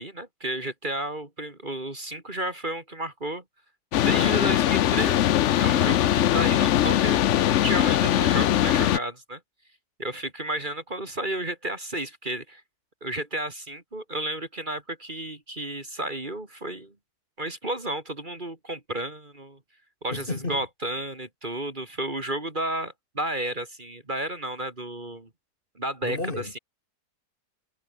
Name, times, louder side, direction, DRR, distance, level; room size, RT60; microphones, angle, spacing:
voice 1, 0.0-3.4 4.0-5.3 5.6-9.4 10.0-12.6 13.0-16.9 17.4-19.6 20.0-25.3 25.8-26.6, right 1 dB, 30° right, 2.9 m, -32 dB
sound 1, 3.9-9.0, left 12 dB, 60° left, 0.8 m, -21 dB
voice 2, 20.1-20.6 26.0-26.6, left 2 dB, 35° left, 2.5 m, -32 dB
omnidirectional pair, 1.7 m